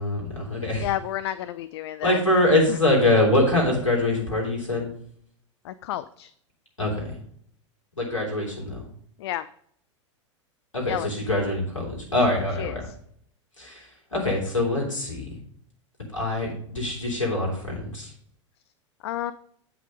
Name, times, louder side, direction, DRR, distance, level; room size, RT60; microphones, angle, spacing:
voice 1, 0.0-0.9 2.0-4.9 6.8-7.2 8.0-8.8 10.7-12.9 13.6-15.4 16.1-18.1, left 1 dB, 90° left, -2 dB, 3.2 m, -24 dB
voice 2, 0.8-2.2 2.7-2.8 5.6-6.3 9.2-9.5 10.8-11.1 12.6-12.9 19.0-19.3, left 13 dB, 55° left, 15 dB, 0.4 m, -31 dB
8.5 x 5.7 x 5.2 m, 0.63 s
figure-of-eight pair, 90°, 16 cm